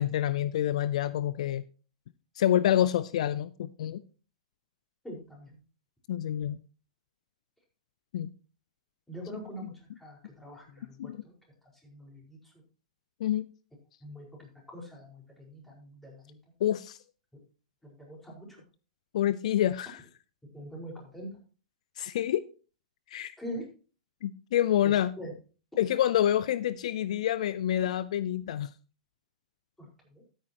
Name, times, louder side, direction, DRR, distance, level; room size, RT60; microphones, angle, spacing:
voice 1, 0.0-1.6 2.4-4.0 6.1-6.6 8.1-8.3 11.0-11.2 13.2-13.5 16.6-17.0 19.1-20.0 22.0-22.4 23.1-23.3 24.2-25.1 25.8-28.7, left 11 dB, 65° left, 0.5 m, -27 dB
voice 2, 5.0-5.6 9.1-11.3 11.8-12.6 14.0-16.4 17.3-17.4 17.8-18.6 20.5-21.4 23.4-23.6 24.8-25.3 29.8-30.2, equal, 5° left, 4.8 m, -44 dB
13.0 x 9.2 x 2.9 m
hypercardioid pair, 115°, 4 cm